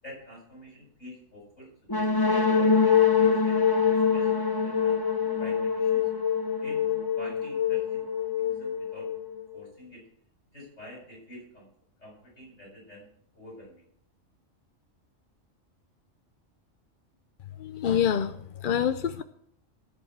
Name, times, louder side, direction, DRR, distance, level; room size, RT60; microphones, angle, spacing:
voice 1, 0.0-5.0 5.4-6.1 6.6-8.1 8.4-9.1 9.5-10.0 10.5-11.7 12.0-13.1 13.3-13.8, left 1 dB, 75° left, -4 dB, 7.8 m, -47 dB
sound 1, 1.9-9.6, left 6 dB, 20° left, 0.9 m, -24 dB
voice 2, 17.6-19.2, left 8 dB, 55° left, 10 dB, 0.6 m, -26 dB
16.0 x 5.5 x 8.1 m, 0.66 s
omnidirectional pair, 1.3 m